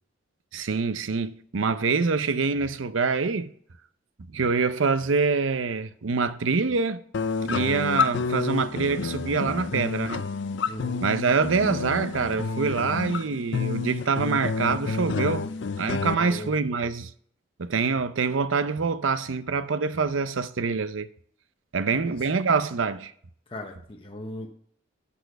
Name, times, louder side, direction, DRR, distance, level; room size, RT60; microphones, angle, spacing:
voice 1, 0.5-3.5 4.3-7.0 7.4-10.2 11.0-15.5 15.8-17.1 17.6-21.1 21.7-23.1, right 4 dB, 75° right, 0.6 m, -25 dB
sound 1, 7.1-16.1, left 5 dB, 60° left, 0.5 m, -29 dB
voice 2, 10.7-11.1 16.1-16.6 21.8-22.3 23.5-24.5, left 1 dB, 30° left, 0.9 m, -38 dB
12.5 x 4.3 x 6.7 m
head